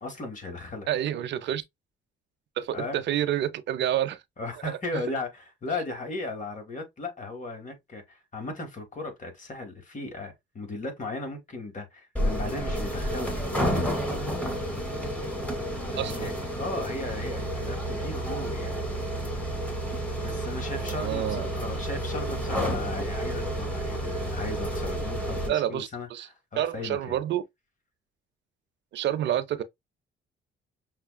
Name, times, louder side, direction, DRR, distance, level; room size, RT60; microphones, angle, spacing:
voice 1, 0.0-0.9 2.7-3.0 4.4-13.3 15.9-18.8 20.2-26.1 26.5-27.2, left 2 dB, 40° left, 1.5 m, -36 dB
voice 2, 0.9-1.6 2.6-4.2 4.9-5.0 16.0-16.3 20.8-21.5 25.5-26.3 26.6-27.4 28.9-29.6, right 11 dB, 65° right, 0.5 m, -28 dB
sound 1, 12.2-25.5, right 1 dB, 5° left, 1.5 m, -30 dB
5.7 x 2.2 x 2.2 m
cardioid pair, 90°, 20 cm